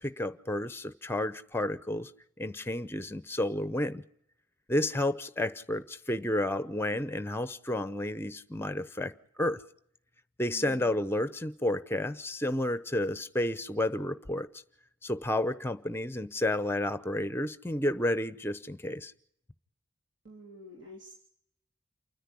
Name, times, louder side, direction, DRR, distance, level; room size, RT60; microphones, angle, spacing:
voice 1, 0.0-2.1 2.4-4.0 4.7-9.1 9.4-9.6 10.4-14.5 15.0-19.1, left 1 dB, 10° left, 0.8 m, -31 dB
voice 2, 10.5-11.0 20.2-21.1, equal, 60° right, 3.4 m, -48 dB
28.5 x 10.0 x 9.9 m
head